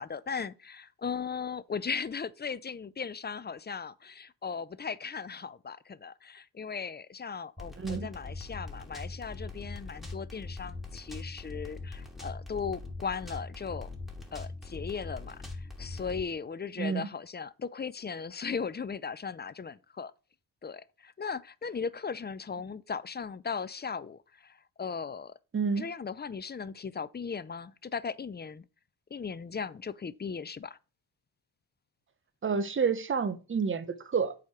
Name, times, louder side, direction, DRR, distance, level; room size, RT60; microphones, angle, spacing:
voice 1, 0.0-13.9 14.3-20.1 20.6-25.3 25.8-28.7 29.1-30.8, left 5 dB, 25° left, 0.5 m, -37 dB
sound 1, 7.6-16.2, left 3 dB, ahead, 2.6 m, -41 dB
voice 2, 7.8-8.1 16.8-17.1 25.5-25.9 32.4-34.4, right 5 dB, 30° right, 1.1 m, -29 dB
8.0 x 5.0 x 5.8 m
cardioid pair, 85°, 42 cm